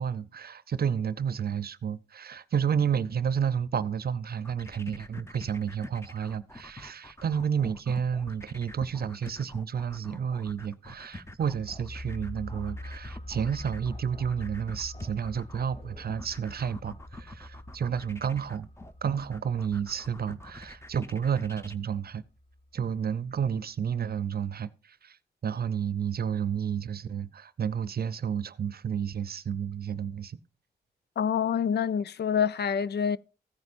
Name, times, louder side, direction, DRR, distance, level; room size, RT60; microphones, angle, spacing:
voice 1, 0.0-18.7 19.0-22.2 22.7-25.2 25.4-30.4, right 7 dB, 60° right, 0.7 m, -31 dB
sound 1, 4.3-21.8, left 2 dB, 15° left, 0.9 m, -46 dB
sound 2, 11.5-22.9 23.2-23.3, left 1 dB, 35° left, 1.9 m, -44 dB
voice 2, 31.2-33.2, left 7 dB, 70° left, 0.5 m, -26 dB
15.0 x 9.6 x 2.5 m
cardioid pair, 60°, 17 cm